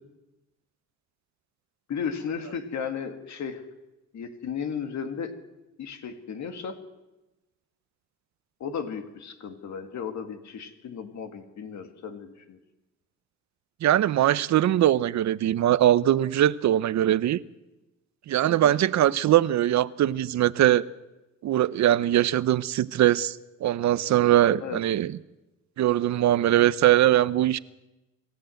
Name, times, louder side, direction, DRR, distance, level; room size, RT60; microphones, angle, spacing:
voice 1, 1.9-3.6 4.1-5.3 5.8-6.8 8.6-12.6 18.5-18.8 24.6-24.8, left 6 dB, 65° left, 2.2 m, -35 dB
voice 2, 13.8-17.4 18.3-20.8 21.4-25.2 25.8-27.6, right 12 dB, 65° right, 0.8 m, -21 dB
26.0 x 14.0 x 7.8 m
cardioid pair, 90°, 30 cm